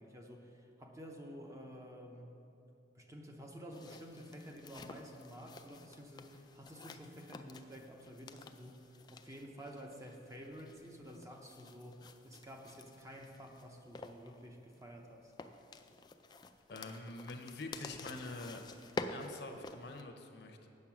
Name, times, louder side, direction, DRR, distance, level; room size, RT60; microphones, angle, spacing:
voice 1, 0.0-2.4 2.9-15.3, equal, 15° right, 2 dB, 0.8 m, -51 dB
sound 1, 3.7-20.0, left 3 dB, 25° left, 0.3 m, -50 dB
voice 2, 16.7-18.6 19.1-20.7, left 2 dB, 60° left, 4 dB, 0.8 m, -46 dB
8.6 x 6.8 x 5.9 m, 2.8 s
head